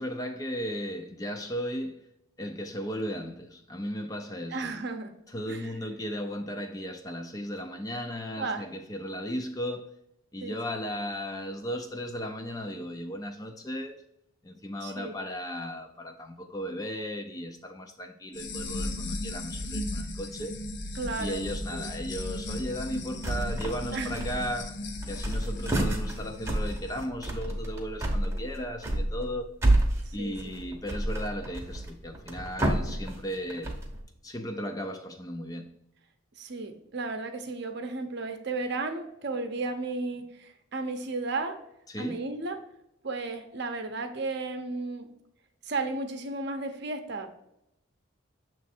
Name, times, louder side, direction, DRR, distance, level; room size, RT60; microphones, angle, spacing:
voice 1, 0.0-2.1 2.4-4.8 5.3-9.9 10.3-14.0 14.4-20.5 21.2-24.8 25.1-29.6 30.1-33.7 34.2-35.7 41.9-42.2, equal, 15° left, 0.4 m, -36 dB
voice 2, 4.5-5.1 5.5-5.7 8.4-8.6 10.4-10.5 14.8-15.2 20.9-21.4 21.7-21.8 23.9-24.2 30.1-30.4 36.4-41.6 42.0-42.6 43.0-45.1 45.7-47.3, right 3 dB, 55° right, 0.7 m, -34 dB
sound 1, 18.3-27.0, left 1 dB, 55° left, 0.6 m, -36 dB
sound 2, 23.2-23.8 24.1-24.7 25.0-34.0, right 1 dB, 15° right, 0.8 m, -29 dB
7.0 x 3.1 x 4.3 m
head